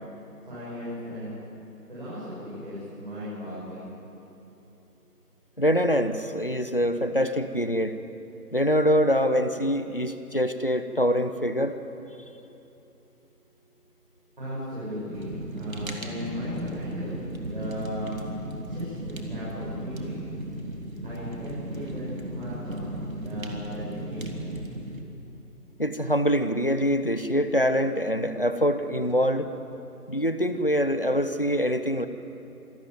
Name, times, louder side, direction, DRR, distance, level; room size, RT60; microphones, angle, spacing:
voice 1, 0.4-1.3 1.9-3.9 14.4-18.2 18.6-20.2 21.0-24.6, equal, 30° right, -10 dB, 7.0 m, -36 dB
voice 2, 5.6-8.0 8.5-11.8 25.8-29.5 30.1-32.1, equal, 35° left, 10 dB, 0.8 m, -24 dB
Fire, 15.1-25.0, right 1 dB, 60° right, 2.7 m, -36 dB
26.5 x 12.5 x 9.3 m, 2.9 s
figure-of-eight pair, 175°, 47 cm